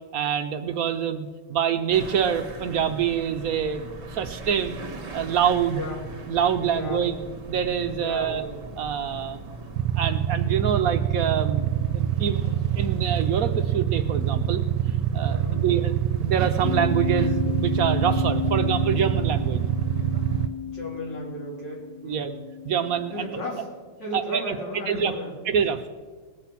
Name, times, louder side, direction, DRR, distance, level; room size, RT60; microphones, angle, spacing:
voice 1, 0.1-4.8 5.1-5.9 6.3-7.2 7.5-8.4 8.8-9.4 10.0-15.9 16.2-19.7 22.0-22.3 22.6-23.3 24.1-24.6 24.9-25.1 25.5-25.8, right 8 dB, 65° right, 8 dB, 1.0 m, -26 dB
sound 1, 1.9-20.5, right 2 dB, 40° right, 1.5 m, -40 dB
voice 2, 5.7-6.0 6.7-7.0 8.0-8.5 15.2-15.6 20.7-22.4 23.1-23.7 24.0-25.6, left 1 dB, 90° left, -3 dB, 4.1 m, -35 dB
Motorcycle / Idling, 9.8-20.5, right 11 dB, 80° right, 1.2 m, -25 dB
sound 2, 16.6-23.7, left 8 dB, 75° left, 1.1 m, -33 dB
19.5 x 7.9 x 5.8 m, 1.4 s
omnidirectional pair, 1.9 m